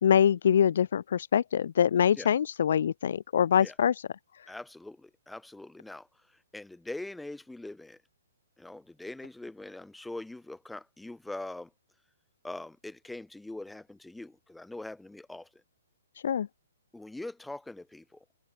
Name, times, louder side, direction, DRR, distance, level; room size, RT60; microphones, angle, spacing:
voice 1, 0.0-3.9 16.2-16.5, left 8 dB, 60° left, 0.5 m, -24 dB
voice 2, 4.5-8.0 8.6-11.7 12.4-15.5 16.9-18.2, left 2 dB, 5° left, 1.6 m, -42 dB
figure-of-eight pair, 120°, 0 cm